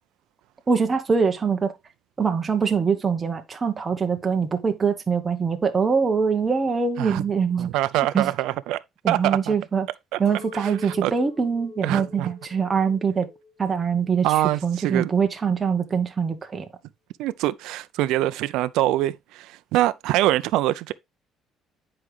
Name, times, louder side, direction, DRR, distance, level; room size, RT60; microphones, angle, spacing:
voice 1, 0.7-1.7 2.2-7.7 8.1-8.3 9.0-9.9 10.2-13.3 13.6-16.7, right 5 dB, 20° right, 0.8 m, -23 dB
voice 2, 7.6-8.8 9.1-9.5 10.1-10.2 10.5-11.1 11.8-12.3 14.2-15.1 17.2-20.9, right 15 dB, 80° right, 0.4 m, -24 dB
Chink clink, 10.3-14.6 15.0-15.6, left 4 dB, 60° left, 1.5 m, -45 dB
9.6 x 4.8 x 3.2 m
cardioid pair, 165°, 0 cm